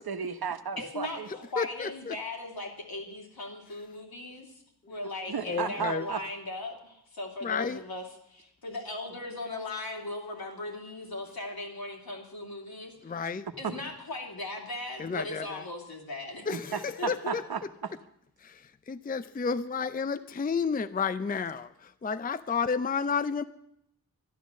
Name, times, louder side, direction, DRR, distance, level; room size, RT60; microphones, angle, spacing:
voice 1, 0.1-1.3 5.3-6.2 13.6-13.7 16.5-17.9, right 7 dB, 80° right, 8 dB, 1.1 m, -34 dB
voice 2, 0.8-4.6 4.9-13.2 13.6-17.4, left 2 dB, 75° left, 0 dB, 3.2 m, -38 dB
voice 3, 1.6-2.1 5.4-6.1 7.4-7.8 13.0-13.5 15.0-15.6 16.5-17.4 18.4-23.4, left 5 dB, 25° left, 13 dB, 0.5 m, -31 dB
12.0 x 11.5 x 7.3 m, 0.76 s
wide cardioid pair, 90°, 37 cm